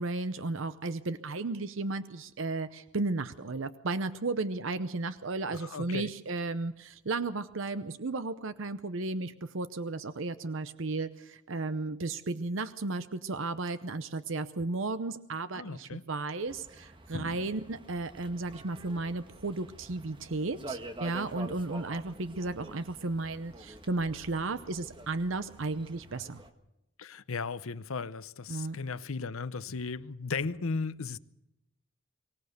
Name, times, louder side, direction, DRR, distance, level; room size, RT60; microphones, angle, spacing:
voice 1, 0.0-26.4 28.5-28.8, right 3 dB, 65° right, 0.7 m, -34 dB
voice 2, 5.6-6.1 15.5-16.0 17.1-17.4 27.0-31.2, left 4 dB, 80° left, 0.8 m, -36 dB
sound 1, 16.5-26.5, right 2 dB, 25° right, 1.5 m, -47 dB
24.0 x 17.5 x 6.7 m
head